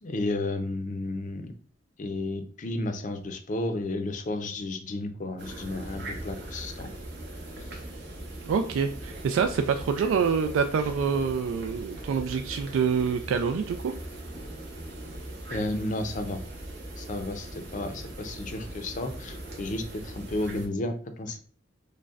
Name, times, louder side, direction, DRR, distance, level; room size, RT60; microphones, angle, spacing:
voice 1, 0.0-1.5 2.0-6.9 7.6-7.7 15.5-16.4 17.0-21.4, left 2 dB, 40° left, 7 dB, 0.5 m, -32 dB
sound 1, 5.4-20.7, right 1 dB, 60° right, 0.9 m, -40 dB
voice 2, 8.5-13.9, right 6 dB, 85° right, 8 dB, 0.3 m, -26 dB
6.3 x 2.1 x 2.4 m, 0.43 s
head